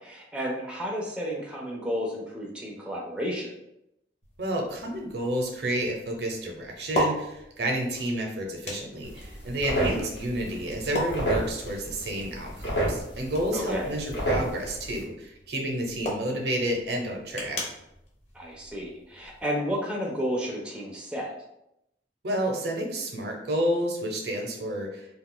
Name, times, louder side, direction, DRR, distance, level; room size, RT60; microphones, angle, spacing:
voice 1, 0.0-3.5 9.8-10.1 13.5-13.9 18.3-21.3, equal, 5° right, -3 dB, 0.4 m, -32 dB
sound 1, 4.2-19.4, equal, 40° left, 0.7 m, -38 dB
voice 2, 4.4-17.6 22.2-25.1, right 1 dB, 60° right, 1 dB, 0.6 m, -30 dB
sound 2, 9.0-15.0, right 1 dB, 80° left, 1.0 m, -31 dB
2.4 x 2.3 x 3.7 m, 0.82 s
head